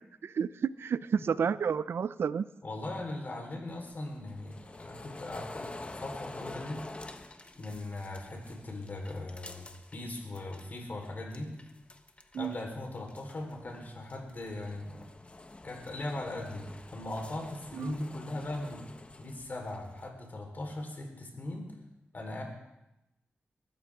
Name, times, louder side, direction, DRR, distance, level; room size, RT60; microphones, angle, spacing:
voice 1, 0.2-2.4 12.3-12.5 17.8-17.9, right 7 dB, 80° right, 16 dB, 0.5 m, -30 dB
voice 2, 1.1-1.5 2.6-6.8 7.6-11.5 12.4-15.1 15.6-18.8 19.2-21.7 22.1-22.4, left 2 dB, 50° left, 2 dB, 4.3 m, -39 dB
sound 1, 3.7-10.8 11.0-12.6 13.0-20.1, left 2 dB, 30° left, 1.1 m, -48 dB
22.0 x 14.0 x 3.7 m, 0.90 s
wide cardioid pair, 80°, 4 cm